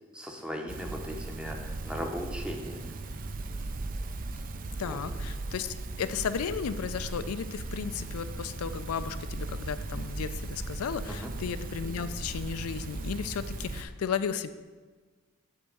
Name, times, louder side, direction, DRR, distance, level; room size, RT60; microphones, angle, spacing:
voice 1, 0.1-2.9 4.8-5.0 11.1-11.3, equal, 5° right, 2 dB, 0.7 m, -38 dB
sound 1, 0.7-13.8, right 2 dB, 40° right, 0.5 m, -37 dB
voice 2, 4.8-14.5, left 7 dB, 85° left, 11 dB, 0.4 m, -34 dB
8.2 x 3.5 x 6.5 m, 1.4 s
head